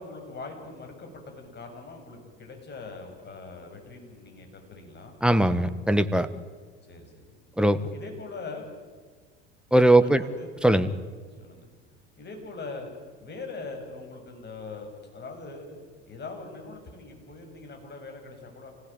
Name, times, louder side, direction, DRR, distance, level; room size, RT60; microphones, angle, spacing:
voice 1, 0.0-5.2 6.9-7.1 7.9-8.7 9.9-10.5 10.8-11.0 11.4-11.7 12.2-12.9 13.2-15.7 16.1-18.7, left 3 dB, 30° left, 3 dB, 7.8 m, -41 dB
voice 2, 5.2-6.3 7.6-7.8 9.7-10.2 10.6-10.9, right 1 dB, 5° right, 10 dB, 1.5 m, -20 dB
29.0 x 17.5 x 9.2 m, 1.5 s
hypercardioid pair, 75°, 32 cm